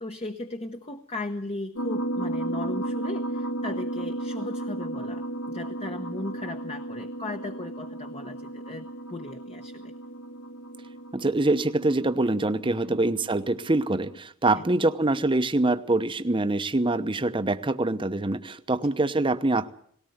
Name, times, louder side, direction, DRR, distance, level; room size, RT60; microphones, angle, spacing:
voice 1, 0.0-9.9 12.9-13.0 14.5-14.6, left 2 dB, 25° left, 6 dB, 1.0 m, -37 dB
sound 1, 1.7-14.2, right 1 dB, 75° left, 1.7 m, -34 dB
voice 2, 11.1-19.7, right 2 dB, 20° right, 10 dB, 0.8 m, -24 dB
19.0 x 17.5 x 8.0 m, 0.64 s
head